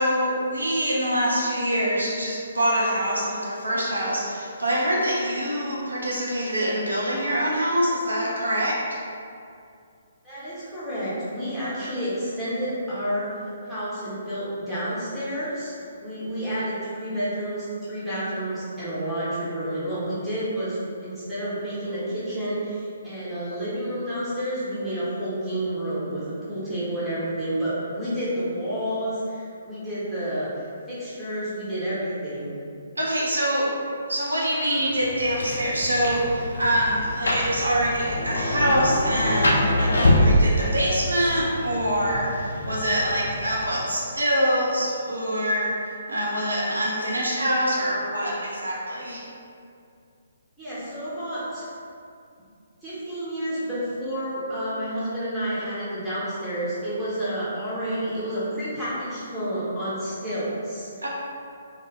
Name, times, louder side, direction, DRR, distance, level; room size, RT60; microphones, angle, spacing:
voice 1, 0.0-9.0 33.0-33.7 34.1-49.2 61.0-61.1, equal, 75° right, -5 dB, 0.6 m, -25 dB
voice 2, 10.2-15.7 16.0-32.6 50.6-51.7 52.8-60.9, right 1 dB, 5° right, -13 dB, 0.8 m, -30 dB
Rain, 34.9-43.9, left 1 dB, 65° left, 0.4 m, -25 dB
2.3 x 2.1 x 3.3 m, 2.4 s
figure-of-eight pair, 135°, 0 cm